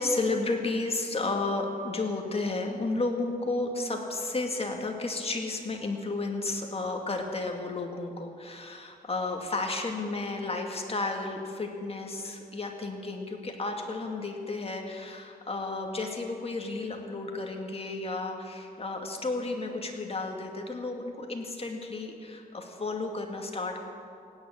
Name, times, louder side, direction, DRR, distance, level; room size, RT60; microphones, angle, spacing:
voice 1, 0.0-23.8, left 3 dB, 35° left, 2 dB, 2.3 m, -32 dB
17.0 x 9.6 x 8.8 m, 2.5 s
cardioid pair, 80°, 16 cm